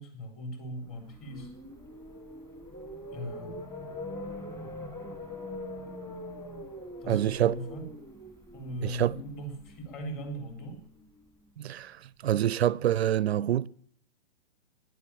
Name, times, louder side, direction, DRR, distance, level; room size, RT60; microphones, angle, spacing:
voice 1, 0.0-1.5 3.1-3.6 7.0-7.9 8.5-10.8, right 1 dB, 30° left, 4.3 m, -39 dB
sound 1, 1.0-11.1, left 1 dB, 10° left, 1.5 m, -43 dB
voice 2, 7.1-7.5 8.8-9.1 11.6-13.7, right 11 dB, 65° right, 0.5 m, -26 dB
11.5 x 10.5 x 8.8 m
hypercardioid pair, 125°, 34 cm